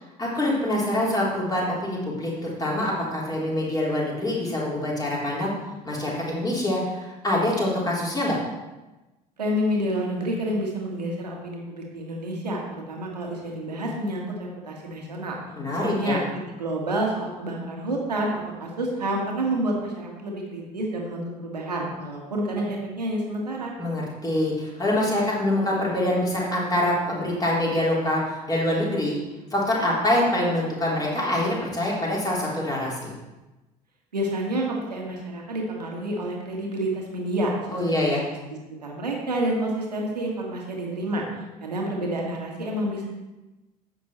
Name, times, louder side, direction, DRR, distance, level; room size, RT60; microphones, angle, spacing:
voice 1, 0.2-5.5 5.8-8.4 15.6-16.2 23.8-29.2 29.5-33.1 37.7-38.2, left 1 dB, 20° left, -4 dB, 3.5 m, -25 dB
voice 2, 9.4-12.6 12.9-15.4 15.7-16.2 16.6-23.7 34.1-38.1 38.5-41.2 41.6-43.1, right 1 dB, 80° right, 0 dB, 1.7 m, -29 dB
10.0 x 7.8 x 4.4 m, 1.1 s
figure-of-eight pair, 60°, 21 cm